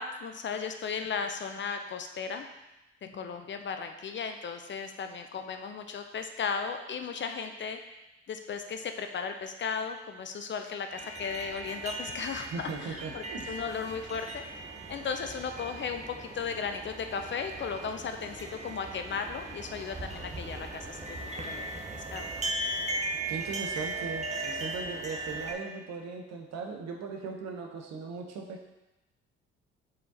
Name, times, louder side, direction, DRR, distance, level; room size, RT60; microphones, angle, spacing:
voice 1, 0.0-2.5 3.0-7.8 8.3-14.4 14.9-21.7 21.9-22.3, left 6 dB, 35° left, 6 dB, 0.6 m, -36 dB
sound 1, 10.9-25.5, right 2 dB, 20° right, 0.9 m, -38 dB
voice 2, 12.5-13.6 23.3-28.7, right 4 dB, 55° right, 2 dB, 1.1 m, -38 dB
5.2 x 4.4 x 4.1 m, 1.0 s
figure-of-eight pair, 45°, 32 cm